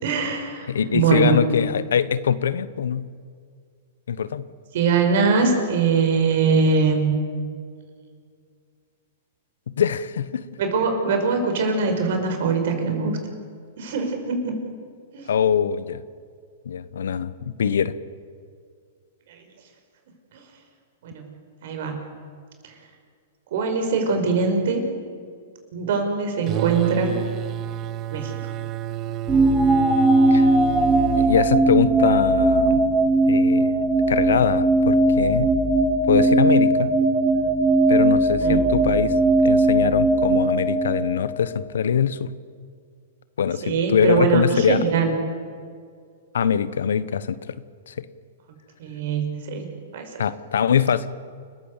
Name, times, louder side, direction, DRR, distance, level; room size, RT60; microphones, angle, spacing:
voice 1, 0.0-1.4 4.7-7.1 10.6-13.1 13.8-14.5 15.1-15.3 19.3-19.4 21.0-21.2 21.6-22.0 23.5-24.8 25.7-27.1 28.1-28.4 38.4-38.6 43.6-45.1 48.8-50.1, right 5 dB, 65° right, 5 dB, 5.4 m, -22 dB
voice 2, 0.7-3.0 4.1-4.4 9.8-10.4 15.3-16.0 16.7-17.9 30.3-30.5 31.2-32.8 33.3-33.7 34.1-35.5 36.1-36.9 37.9-39.1 39.4-42.3 43.4-44.8 46.3-47.4 47.9-48.0 50.2-51.1, left 7 dB, 80° left, 16 dB, 1.1 m, -22 dB
sound 1, 26.5-31.4, right 12 dB, 35° right, 0.7 m, -30 dB
sound 2, 29.3-41.4, right 2 dB, 10° right, 4.1 m, -19 dB
29.5 x 14.5 x 8.3 m, 2.1 s
hypercardioid pair, 130°, 0 cm